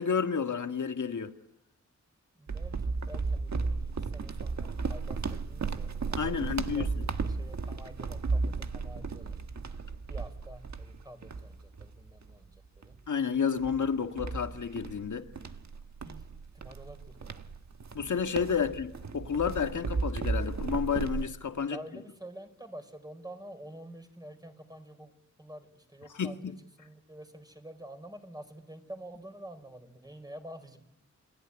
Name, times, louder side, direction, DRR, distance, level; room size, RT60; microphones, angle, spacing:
voice 1, 0.0-1.3 6.2-7.0 13.1-15.3 17.9-21.8 26.2-26.5, left 6 dB, 80° left, 1.8 m, -31 dB
voice 2, 2.4-9.4 10.1-12.9 16.0-16.2 16.5-17.4 18.5-18.7 21.7-25.1 25.4-30.8, right 1 dB, 15° right, 4.4 m, -48 dB
sound 1, 2.5-12.3 12.8-13.0 13.6-21.2, right 4 dB, 65° right, 1.6 m, -35 dB
29.0 x 21.0 x 9.9 m
wide cardioid pair, 115°, 30 cm